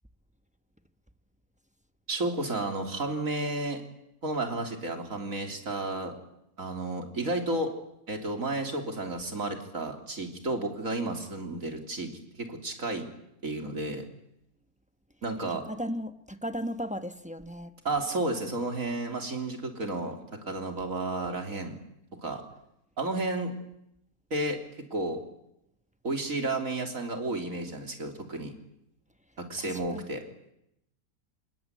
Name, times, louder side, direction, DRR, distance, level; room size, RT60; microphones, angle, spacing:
voice 1, 2.1-3.8 4.2-6.1 6.6-7.7 8.1-13.1 13.4-14.0 15.2-15.6 17.8-20.2 20.5-21.8 22.2-22.4 23.0-23.5 24.3-24.6 24.9-25.2 26.0-28.5 29.4-30.2, right 2 dB, 65° right, 3.8 m, -32 dB
voice 2, 15.5-17.7 29.6-30.1, equal, 5° right, 1.0 m, -36 dB
27.0 x 21.0 x 9.6 m
omnidirectional pair, 1.5 m